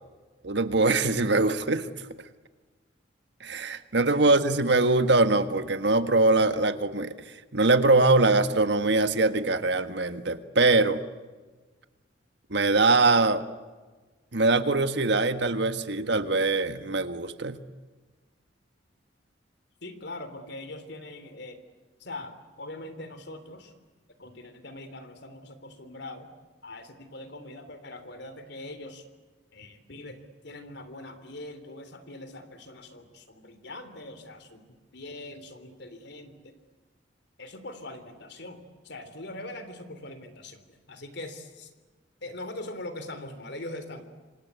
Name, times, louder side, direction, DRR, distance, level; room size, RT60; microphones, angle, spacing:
voice 1, 0.4-1.9 3.4-11.0 12.5-13.4 14.3-17.6, right 3 dB, 70° right, 10 dB, 1.6 m, -23 dB
voice 2, 19.8-21.6 22.0-23.7 24.2-26.3 26.6-29.0 29.5-34.7 34.9-36.6 37.4-41.7 42.2-44.0, left 2 dB, 65° left, 10 dB, 3.4 m, -42 dB
27.0 x 26.5 x 8.3 m, 1.3 s
head